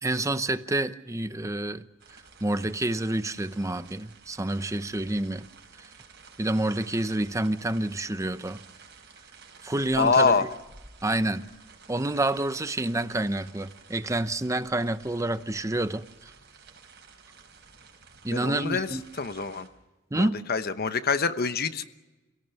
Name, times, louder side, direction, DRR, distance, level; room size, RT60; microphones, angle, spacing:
voice 1, 0.0-1.8 2.4-5.5 5.8-5.9 6.4-8.6 9.6-10.4 11.0-11.5 11.9-16.1 18.2-19.0 20.1-20.4, right 1 dB, 15° right, 12 dB, 0.8 m, -28 dB
sound 1, 2.0-19.7, right 5 dB, 60° right, 4.6 m, -52 dB
voice 2, 10.0-10.4 18.3-18.9 19.2-19.7 20.1-21.8, left 4 dB, 50° left, 10 dB, 1.0 m, -25 dB
27.0 x 17.5 x 7.0 m, 1.1 s
head